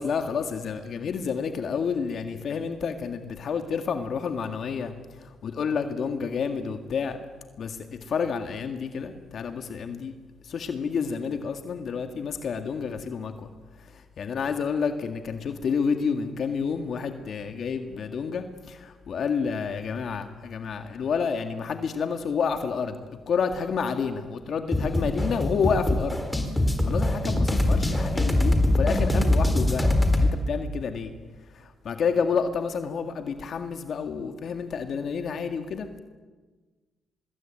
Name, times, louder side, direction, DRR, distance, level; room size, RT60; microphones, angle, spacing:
voice 1, 0.0-7.2 7.6-10.1 10.4-23.0 23.3-26.2 26.8-29.9 30.2-31.1 31.5-36.0, left 6 dB, 60° left, 7 dB, 1.9 m, -29 dB
sound 1, 24.7-30.3, left 1 dB, 10° left, 4.1 m, -23 dB
24.5 x 21.0 x 9.0 m, 1.3 s
cardioid pair, 90°, 0 cm